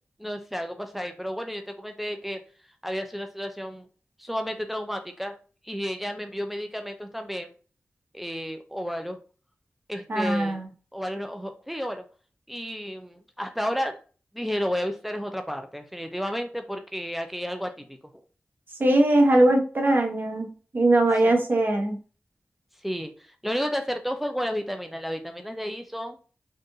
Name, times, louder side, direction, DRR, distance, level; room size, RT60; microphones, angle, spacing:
voice 1, 0.2-2.4 2.8-3.9 4.2-5.4 5.6-7.5 8.1-9.2 9.9-10.6 10.9-12.0 12.5-14.0 14.3-18.0 21.3-21.4 22.8-26.2, equal, 5° right, 6 dB, 0.5 m, -32 dB
voice 2, 10.1-10.7 18.8-22.0, right 1 dB, 50° right, 1 dB, 1.0 m, -21 dB
3.7 x 2.5 x 2.6 m, 0.37 s
cardioid pair, 45°, 4 cm